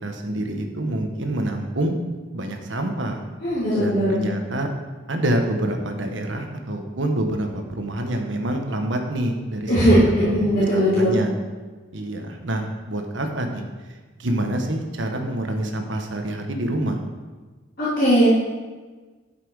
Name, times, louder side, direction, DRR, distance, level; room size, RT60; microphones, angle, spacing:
voice 1, 0.0-2.0 2.3-3.2 3.8-4.7 5.1-11.3 11.9-13.6 14.2-17.0, right 1 dB, 75° right, 4 dB, 1.2 m, -27 dB
voice 2, 3.4-4.4 9.7-11.2 17.8-18.3, equal, 50° left, -11 dB, 3.1 m, -19 dB
11.5 x 5.9 x 4.8 m, 1.3 s
head